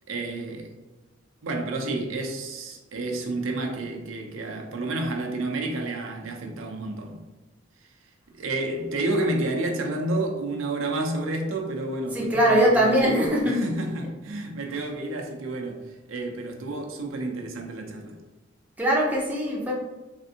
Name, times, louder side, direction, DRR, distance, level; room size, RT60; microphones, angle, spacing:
voice 1, 0.1-0.7 1.4-7.2 8.3-18.2, right 2 dB, 90° right, 0.5 m, -30 dB
voice 2, 12.1-13.6 14.7-14.8 18.8-19.7, right 1 dB, 10° right, 0.5 m, -21 dB
3.3 x 2.5 x 2.7 m
head